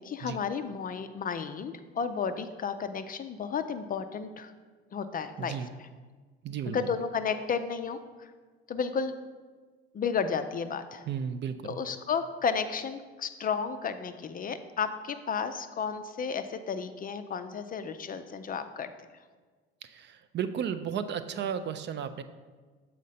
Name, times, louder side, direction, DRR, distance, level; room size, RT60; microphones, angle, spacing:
voice 1, 0.0-4.5 4.9-5.9 6.7-8.3 8.7-9.1 9.9-11.0 11.6-18.9, left 6 dB, 30° left, 9 dB, 0.4 m, -33 dB
voice 2, 5.4-5.7 6.4-6.8 11.1-11.8 19.8-22.2, right 8 dB, 35° right, 10 dB, 0.4 m, -34 dB
7.2 x 4.3 x 4.1 m, 1.4 s
figure-of-eight pair, 55°, 31 cm